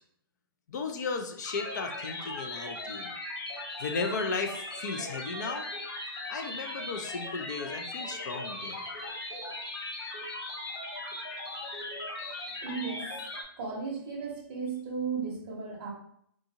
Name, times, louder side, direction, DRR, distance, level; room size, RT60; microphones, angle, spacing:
voice 1, 0.7-3.1 3.8-5.7 6.3-8.8, left 4 dB, 50° left, 6 dB, 0.5 m, -35 dB
sound 1, 1.4-13.4, left 2 dB, 80° left, 1.0 m, -38 dB
voice 2, 12.5-15.9, right 5 dB, 25° right, -2 dB, 0.8 m, -36 dB
3.7 x 2.5 x 2.8 m, 0.68 s
hypercardioid pair, 175°, 13 cm